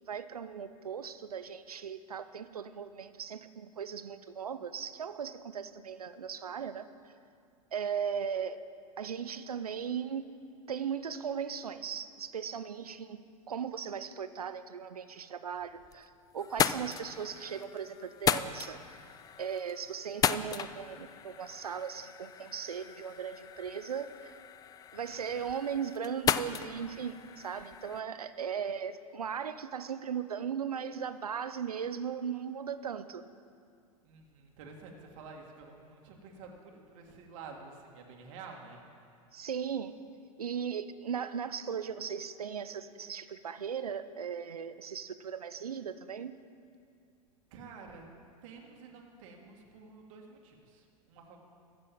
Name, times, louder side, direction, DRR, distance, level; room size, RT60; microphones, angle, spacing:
voice 1, 0.1-6.9 7.7-8.6 9.0-10.3 10.7-13.2 13.5-19.1 19.4-24.3 24.9-33.2 39.3-39.9 40.4-46.3, right 7 dB, 85° right, 12 dB, 0.6 m, -38 dB
sound 1, 15.5-16.1 16.4-28.0, left 8 dB, 20° left, 0.3 m, -36 dB
voice 2, 34.0-38.8 47.5-48.0 48.4-51.4, right 4 dB, 60° right, 1 dB, 1.9 m, -50 dB
15.0 x 6.2 x 7.6 m, 2.3 s
hypercardioid pair, 95°, 19 cm